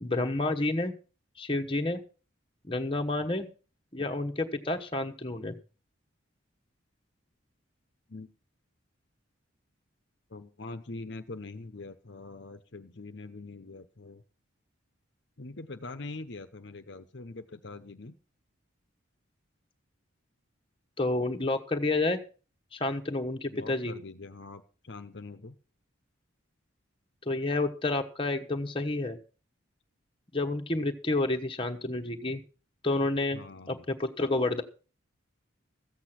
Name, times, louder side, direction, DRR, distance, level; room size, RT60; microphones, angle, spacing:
voice 1, 0.0-0.9 1.4-2.0 2.7-3.5 3.9-5.5 21.0-22.2 22.7-23.9 27.2-29.2 30.3-32.4 32.8-33.4 33.7-34.6, left 2 dB, 25° left, 4 dB, 1.1 m, -29 dB
voice 2, 10.3-14.2 15.4-18.1 23.5-25.5 33.3-33.8, left 3 dB, 55° left, 9 dB, 0.9 m, -43 dB
14.5 x 8.3 x 5.9 m, 0.36 s
head